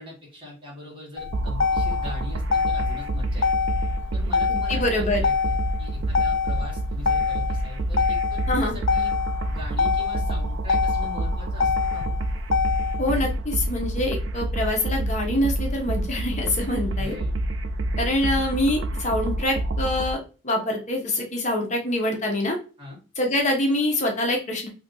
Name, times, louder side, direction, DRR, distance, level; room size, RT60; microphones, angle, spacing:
voice 1, 0.0-3.5 4.1-9.1 9.5-12.1 17.0-17.3 22.8-23.0, left 1 dB, 25° right, -3 dB, 1.4 m, -41 dB
Motor vehicle (road), 1.2-13.2, left 5 dB, 90° left, 0.4 m, -26 dB
sound 1, 1.3-20.1, right 1 dB, 85° right, 0.4 m, -28 dB
voice 2, 4.5-5.2 8.5-8.8 13.0-17.2 18.0-22.6 23.2-24.7, left 1 dB, 40° left, 1 dB, 0.7 m, -25 dB
2.7 x 2.5 x 3.6 m, 0.35 s
head